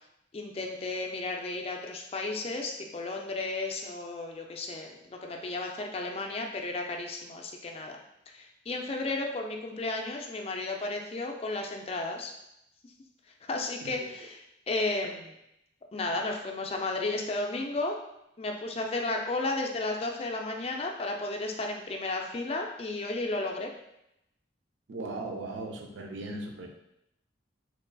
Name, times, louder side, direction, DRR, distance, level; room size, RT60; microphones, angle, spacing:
voice 1, 0.3-8.0 8.3-12.3 12.8-12.9 13.4-15.4 15.9-18.0 18.4-23.7, left 2 dB, 30° left, 2 dB, 0.4 m, -33 dB
voice 2, 24.9-26.7, right 2 dB, 80° right, 2 dB, 0.5 m, -38 dB
3.8 x 3.0 x 2.2 m, 0.82 s
head